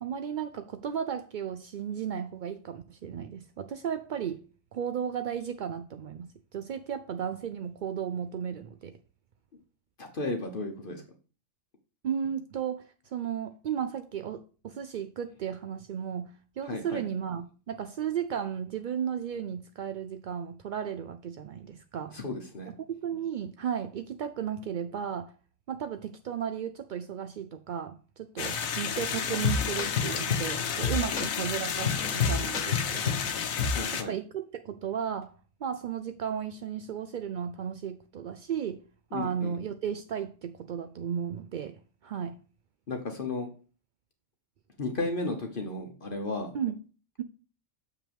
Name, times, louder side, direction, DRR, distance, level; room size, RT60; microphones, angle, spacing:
voice 1, 0.0-4.4 4.7-8.9 12.0-22.2 22.7-25.3 25.7-33.2 33.9-35.3 35.6-38.8 39.1-42.4 46.5-46.8, right 8 dB, 75° right, 0.4 m, -34 dB
voice 2, 10.0-11.0 16.6-17.0 22.1-22.7 33.6-34.1 39.1-39.5 42.9-43.5 44.8-46.5, left 2 dB, 45° left, 1.1 m, -34 dB
sound 1, 28.4-34.0, left 7 dB, 90° left, 1.3 m, -32 dB
sound 2, 28.4-28.6 28.9-29.0 29.4-30.5 30.8-33.3 33.6-33.8, left 5 dB, 65° left, 1.4 m, -29 dB
6.9 x 5.8 x 3.4 m
omnidirectional pair, 1.4 m